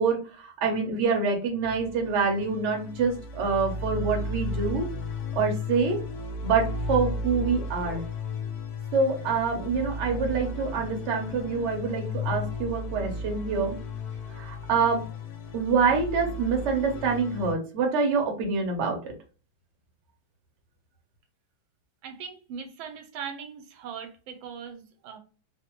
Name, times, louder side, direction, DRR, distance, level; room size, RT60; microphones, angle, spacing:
voice 1, 0.0-4.9 5.3-6.0 6.4-8.0 8.9-13.8 14.4-15.0 15.5-19.1, right 5 dB, 55° right, 2 dB, 0.8 m, -26 dB
sound 1, 1.6-17.5, left 2 dB, 75° left, 0.9 m, -34 dB
voice 2, 22.0-25.2, right 7 dB, 85° right, 6 dB, 1.4 m, -40 dB
3.3 x 2.1 x 2.9 m, 0.36 s
omnidirectional pair, 2.1 m